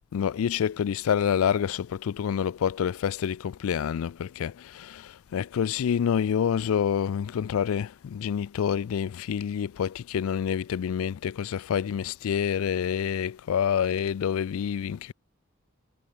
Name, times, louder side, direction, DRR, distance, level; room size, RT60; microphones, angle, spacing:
voice 1, 0.1-15.1, left 8 dB, 85° left, 0.3 m, -27 dB
head